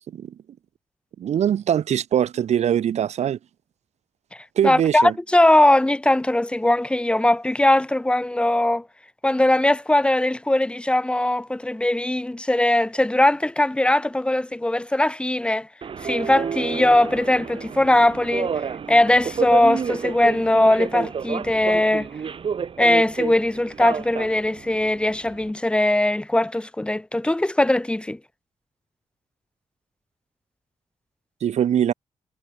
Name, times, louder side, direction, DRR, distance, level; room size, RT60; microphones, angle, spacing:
voice 1, 1.2-3.4 4.6-5.1 31.4-31.9, right 9 dB, 80° right, 1.1 m, -22 dB
voice 2, 4.6-8.9 9.2-15.7 16.0-18.5 18.9-22.1 22.8-28.2, left 1 dB, 10° left, 1.9 m, -20 dB
Subway metro underground, 15.8-25.5, right 6 dB, 50° right, 4.7 m, -30 dB
wide cardioid pair, 150°, 11 cm